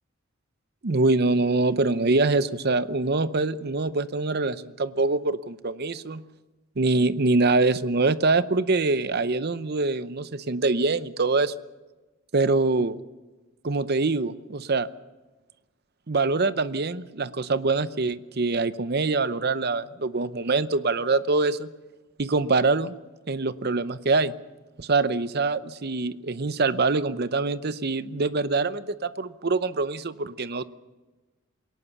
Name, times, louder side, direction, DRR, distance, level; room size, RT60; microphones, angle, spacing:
voice 1, 0.8-6.2 6.8-11.5 12.3-13.0 13.6-14.9 16.1-21.7 22.2-22.9 23.3-24.3 24.8-30.6, right 3 dB, 45° right, 14 dB, 0.7 m, -24 dB
21.5 x 18.5 x 7.0 m, 1.2 s
head